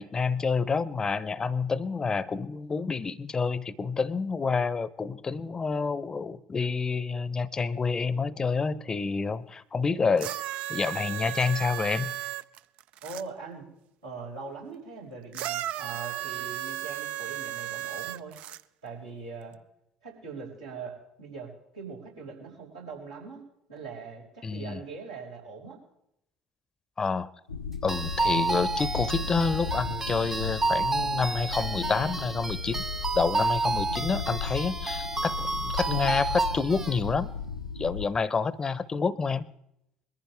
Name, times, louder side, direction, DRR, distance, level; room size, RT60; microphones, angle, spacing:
voice 1, 0.0-12.2 24.4-24.8 27.0-27.3 27.8-32.9 33.1-37.3 37.8-39.5, left 4 dB, 25° left, 20 dB, 0.7 m, -28 dB
sound 1, 10.2-13.2 15.3-18.6 19.5-19.6, right 13 dB, 55° right, 0.4 m, -35 dB
voice 2, 13.0-13.7 14.0-18.4 18.8-19.6 20.0-23.4 23.7-25.8, right 4 dB, 85° right, -6 dB, 5.4 m, -41 dB
sound 2, 27.5-38.1, left 5 dB, 80° left, 0.6 m, -35 dB
sound 3, 27.9-37.0, right 3 dB, 15° right, 0.7 m, -30 dB
22.0 x 14.5 x 3.4 m, 0.78 s
figure-of-eight pair, 60°, 3 cm